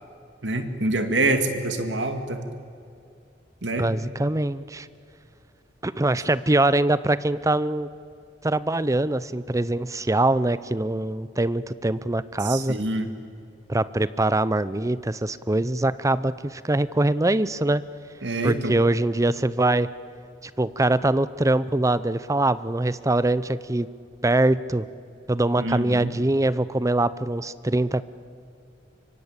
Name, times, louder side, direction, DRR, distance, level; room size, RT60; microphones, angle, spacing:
voice 1, 0.4-2.5 3.6-3.9 12.4-13.1 18.2-18.8 25.6-26.1, right 2 dB, 80° right, 7 dB, 2.3 m, -26 dB
voice 2, 3.8-4.9 5.8-7.9 8.4-12.8 13.7-17.8 18.4-19.9 20.4-23.9 24.2-24.9 25.3-28.0, right 2 dB, 20° right, 16 dB, 0.6 m, -23 dB
25.0 x 24.0 x 8.9 m, 2.5 s
head